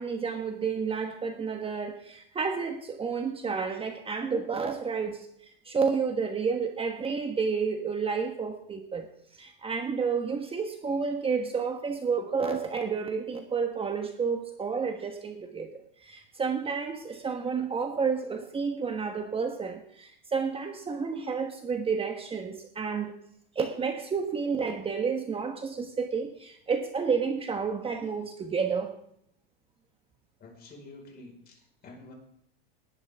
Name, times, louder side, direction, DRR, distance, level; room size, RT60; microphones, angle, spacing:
voice 1, 0.0-5.3 5.6-9.1 9.3-23.1 23.5-28.9, right 5 dB, 20° right, 5 dB, 1.4 m, -30 dB
voice 2, 30.4-32.1, left 2 dB, 30° left, 1 dB, 5.1 m, -49 dB
19.5 x 11.0 x 3.6 m, 0.71 s
supercardioid pair, 115°, 29 cm